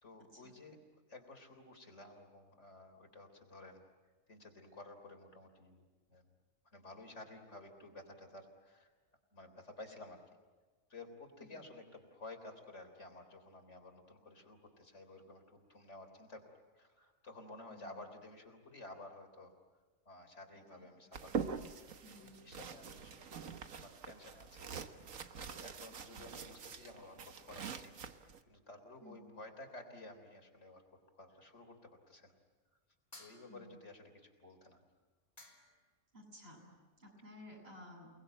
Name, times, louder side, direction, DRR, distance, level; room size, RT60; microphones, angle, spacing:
voice 1, 0.0-3.9 4.3-6.4 6.7-8.9 9.3-10.2 10.9-19.5 20.1-21.7 22.1-23.4 23.8-27.9 28.2-30.8 31.1-32.3 33.2-34.8, left 2 dB, 60° left, 5 dB, 3.9 m, -54 dB
sound 1, 21.1-28.4, right 6 dB, 85° right, 1.6 m, -44 dB
voice 2, 22.0-22.5 26.1-26.3 29.0-29.3 33.5-33.7 36.1-36.7 37.0-38.1, left 1 dB, 50° right, -1 dB, 8.3 m, -55 dB
sound 2, 33.1-33.9 35.0-35.1 35.4-35.9, left 1 dB, 30° left, 3.3 m, -58 dB
29.5 x 20.0 x 9.1 m, 1.4 s
omnidirectional pair, 1.3 m